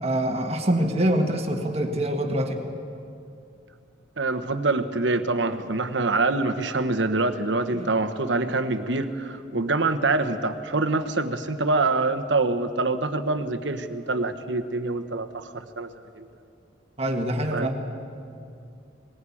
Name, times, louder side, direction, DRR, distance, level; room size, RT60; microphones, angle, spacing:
voice 1, 0.0-2.7 7.7-7.9 17.0-17.8, right 1 dB, 35° right, 4 dB, 1.8 m, -25 dB
voice 2, 4.2-15.9 16.2-16.3 17.5-17.7, right 3 dB, 75° right, 9 dB, 1.2 m, -25 dB
20.5 x 19.5 x 8.6 m, 2.5 s
head